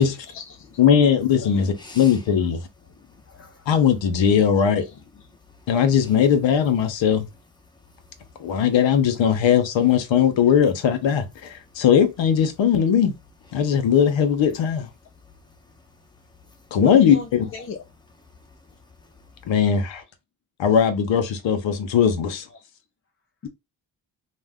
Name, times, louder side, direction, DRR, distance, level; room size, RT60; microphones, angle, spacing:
voice 1, 0.0-0.8 1.4-1.6 2.3-2.5 2.9-3.7 4.8-4.9 16.8-17.8 22.5-22.6 23.4-23.5, left 4 dB, 30° left, 0.3 m, -37 dB
voice 2, 0.8-2.6 3.7-4.8 5.7-7.3 8.4-13.1 13.5-14.9 16.7-17.5 19.5-20.0 20.6-22.5, left 8 dB, 65° left, 0.7 m, -19 dB
voice 3, 1.8-2.2 3.0-3.6 5.5-6.1 7.7-8.6 11.7-11.8 13.6-13.7 15.1-16.7 18.3-19.4, left 3 dB, 10° left, 0.9 m, -50 dB
2.4 x 2.1 x 3.4 m
cardioid pair, 60°, 49 cm